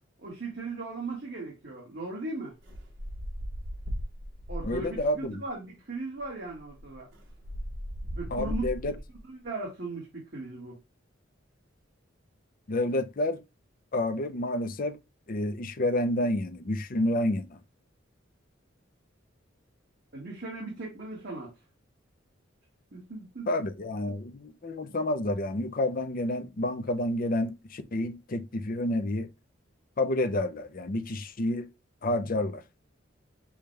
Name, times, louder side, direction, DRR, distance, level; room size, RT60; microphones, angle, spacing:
voice 1, 0.2-2.5 4.5-7.1 8.2-8.6 9.3-10.8 20.1-21.5 22.9-23.5, right 3 dB, 60° right, 1.8 m, -38 dB
sound 1, 2.6-5.2 6.2-6.3 6.6-9.2, equal, 80° right, 1.4 m, -37 dB
voice 2, 4.6-5.4 8.3-9.0 12.7-13.4 13.9-15.0 15.3-17.6 23.5-29.3 30.0-31.7 32.0-32.6, left 1 dB, 45° left, 0.6 m, -29 dB
7.0 x 2.3 x 3.3 m
head